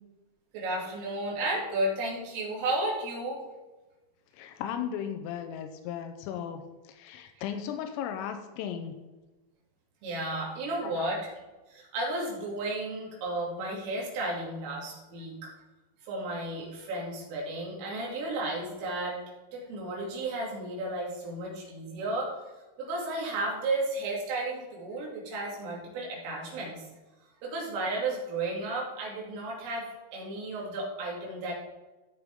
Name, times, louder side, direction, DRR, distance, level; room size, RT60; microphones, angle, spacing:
voice 1, 0.5-3.4 10.0-11.3 11.7-15.4 16.1-19.2 19.5-22.3 22.8-26.8 27.4-29.9 30.1-31.5, right 2 dB, 75° right, -3 dB, 5.0 m, -33 dB
voice 2, 4.3-6.6 6.9-8.9 10.8-11.1, left 8 dB, 90° left, 7 dB, 3.3 m, -36 dB
16.0 x 6.2 x 3.6 m, 1.1 s
omnidirectional pair, 5.8 m